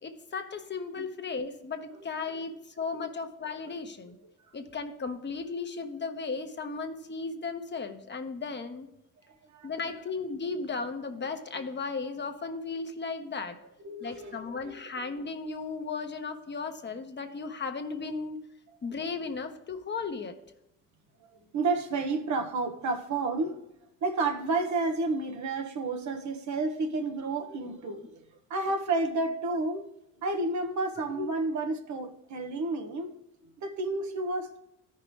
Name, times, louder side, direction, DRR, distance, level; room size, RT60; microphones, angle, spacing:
voice 1, 0.0-4.2 4.5-8.9 9.6-13.6 14.0-18.4 18.8-20.4 27.9-28.0 31.2-31.3, left 4 dB, 35° left, 6 dB, 1.1 m, -35 dB
voice 2, 13.8-14.8 21.2-23.6 24.0-28.2 28.5-29.8 30.2-33.1 33.4-34.6, right 3 dB, 70° right, 5 dB, 1.2 m, -31 dB
14.0 x 5.8 x 3.2 m, 0.89 s
cardioid pair, 90°, 30 cm